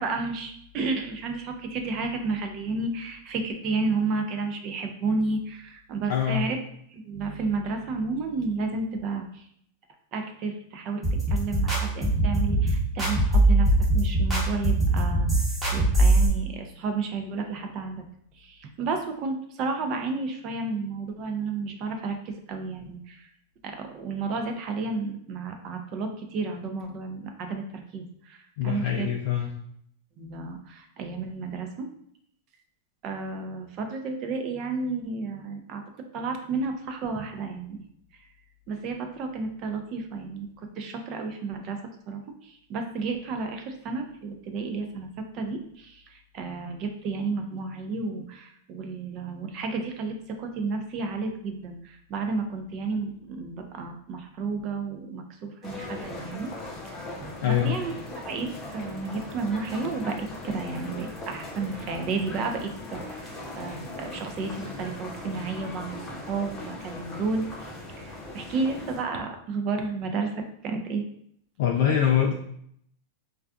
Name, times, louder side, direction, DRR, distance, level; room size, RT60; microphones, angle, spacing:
voice 1, 0.0-6.6 6.9-9.5 10.1-18.0 18.3-23.3 23.6-29.1 30.2-31.9 33.0-35.8 36.1-37.8 38.7-41.8 42.1-56.5 56.8-71.0, right 4 dB, 40° right, 5 dB, 0.4 m, -32 dB
voice 2, 6.1-6.5 28.6-29.5 57.4-57.8 71.6-72.3, left 9 dB, 65° left, -1 dB, 0.3 m, -24 dB
sound 1, 11.0-16.3, right 1 dB, 15° right, 0.9 m, -22 dB
sound 2, 55.6-69.0, left 2 dB, 20° left, 0.6 m, -39 dB
2.5 x 2.3 x 2.3 m, 0.68 s
supercardioid pair, 140°, 0 cm